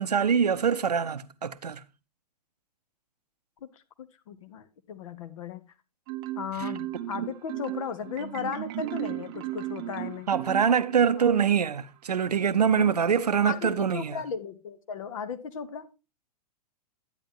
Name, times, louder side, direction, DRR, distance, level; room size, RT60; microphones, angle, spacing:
voice 1, 0.0-1.8 6.6-6.7 10.3-14.2, right 7 dB, 75° right, 0.7 m, -24 dB
voice 2, 4.0-5.6 6.4-10.3 11.2-11.3 12.4-13.0 13.4-15.9, left 7 dB, 55° left, 1.2 m, -36 dB
Marimba xylophone, 6.1-11.2, right 15 dB, 35° right, 0.6 m, -35 dB
10.5 x 9.1 x 2.9 m
figure-of-eight pair, 105°, 20 cm